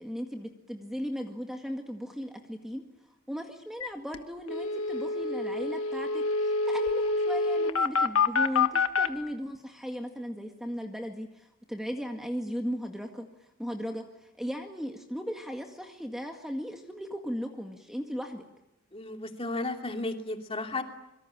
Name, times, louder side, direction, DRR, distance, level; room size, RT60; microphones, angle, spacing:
voice 1, 0.0-2.8 3.3-13.3 13.6-18.4, equal, ahead, 3 dB, 1.9 m, -37 dB
sound 1, 3.8-3.9 4.1-4.2 4.5-9.1, left 4 dB, 75° left, 1.5 m, -27 dB
voice 2, 18.9-20.8, left 2 dB, 25° left, 4 dB, 2.8 m, -33 dB
26.5 x 24.5 x 8.8 m, 0.90 s
head